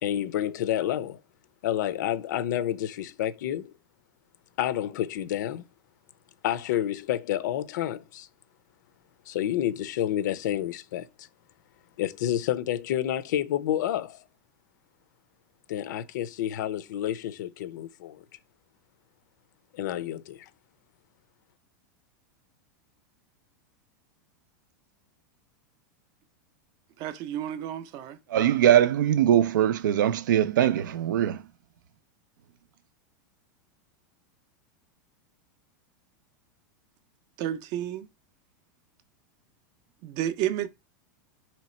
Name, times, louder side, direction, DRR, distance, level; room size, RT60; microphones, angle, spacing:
voice 1, 0.0-1.2 1.6-3.7 4.6-5.7 6.4-8.3 9.3-11.3 12.0-14.2 15.7-18.2 19.7-20.5, left 11 dB, 70° left, 0.5 m, -29 dB
voice 2, 27.0-28.2 37.4-38.1 40.0-40.7, right 11 dB, 40° right, 0.5 m, -31 dB
voice 3, 28.3-31.4, right 11 dB, 90° right, 0.5 m, -21 dB
3.1 x 2.9 x 4.2 m
supercardioid pair, 155°, 10 cm